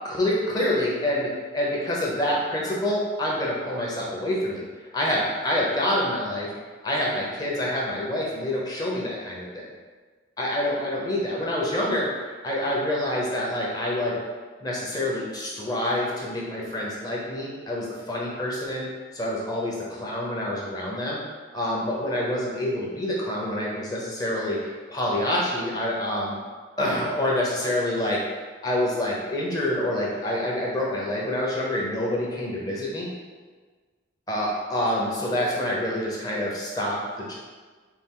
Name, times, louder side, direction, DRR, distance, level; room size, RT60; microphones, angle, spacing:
voice 1, 0.0-4.7 4.9-6.5 6.8-9.6 10.4-14.2 14.6-18.9 19.1-21.2 21.5-26.4 26.8-28.2 28.6-33.1 34.3-37.3, left 1 dB, 20° left, -4 dB, 0.7 m, -27 dB
4.4 x 2.4 x 3.7 m, 1.4 s
head